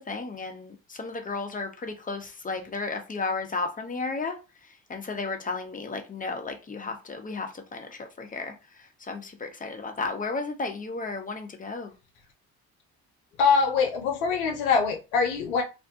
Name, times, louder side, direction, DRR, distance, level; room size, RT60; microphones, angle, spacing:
voice 1, 0.1-4.4 4.9-8.5 9.1-11.9, left 3 dB, 20° left, 0.7 m, -33 dB
voice 2, 13.4-15.6, left 5 dB, 85° left, 0.6 m, -23 dB
2.6 x 2.1 x 2.7 m
hypercardioid pair, 60°, 41 cm